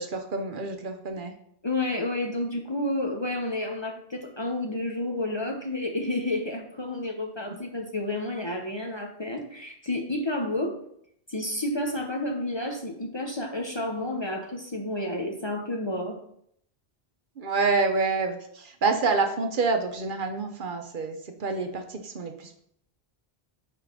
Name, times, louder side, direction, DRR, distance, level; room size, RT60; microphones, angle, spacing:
voice 1, 0.0-1.3 17.4-22.6, right 4 dB, 55° right, 5 dB, 0.8 m, -27 dB
voice 2, 1.6-10.7 11.3-16.2, left 1 dB, 30° left, 1 dB, 0.6 m, -30 dB
5.4 x 5.0 x 4.9 m, 0.70 s
omnidirectional pair, 1.1 m